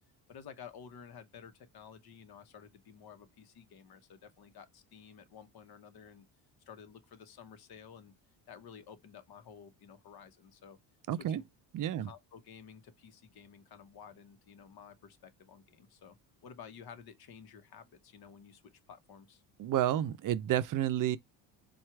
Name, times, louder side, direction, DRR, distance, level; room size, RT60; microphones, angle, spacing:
voice 1, 0.3-6.2 6.7-8.1 8.5-10.8 11.2-11.4 12.0-16.2 16.4-19.4, left 7 dB, 55° left, 1.1 m, -53 dB
voice 2, 11.1-11.4 11.7-12.1 19.6-21.2, right 12 dB, 45° right, 0.6 m, -30 dB
4.4 x 2.4 x 4.6 m
cardioid pair, 100°, 44 cm